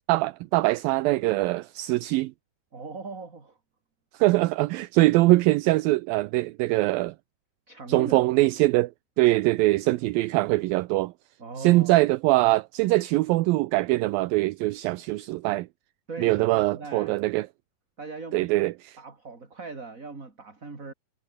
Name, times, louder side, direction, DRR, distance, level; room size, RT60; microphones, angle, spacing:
voice 1, 0.1-2.3 4.1-7.1 7.9-8.9 9.2-11.1 11.6-15.7 16.2-17.5 18.3-19.0, right 19 dB, 80° right, 2.3 m, -22 dB
voice 2, 2.7-3.6 7.7-8.2 11.4-12.0 16.1-17.1 18.0-18.5 19.0-20.9, right 4 dB, 20° right, 3.6 m, -39 dB
omnidirectional pair, 4.4 m